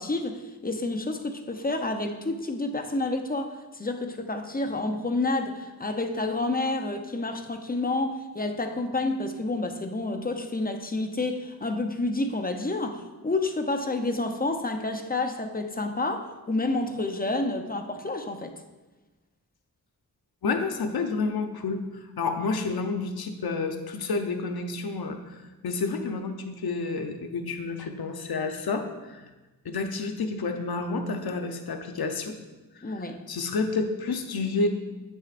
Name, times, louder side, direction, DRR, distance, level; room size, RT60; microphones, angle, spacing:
voice 1, 0.0-18.5 32.8-33.2, left 2 dB, 25° left, 5 dB, 0.6 m, -29 dB
voice 2, 20.4-25.4 25.6-29.3 29.6-32.3 32.8-34.7, left 4 dB, 70° left, 6 dB, 0.8 m, -30 dB
8.7 x 6.3 x 2.5 m, 1.2 s
cardioid pair, 55°, 38 cm